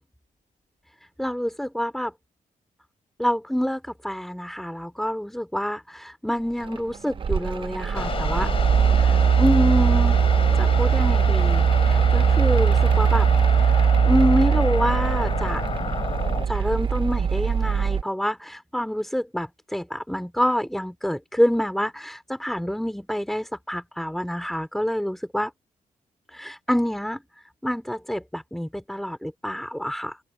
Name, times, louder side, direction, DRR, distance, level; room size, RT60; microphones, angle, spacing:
voice 1, 1.2-2.1 3.2-8.5 9.0-10.2 10.5-13.3 13.6-13.7 14.1-15.6 16.5-25.5 26.3-27.2 27.6-30.2, equal, ahead, 3.3 m, -27 dB
Mechanical fan, 6.7-18.0, right 7 dB, 40° right, 0.6 m, -20 dB
sound 1, 7.9-16.5, left 6 dB, 45° left, 3.3 m, -31 dB
open air
wide cardioid pair, 145°, 13 cm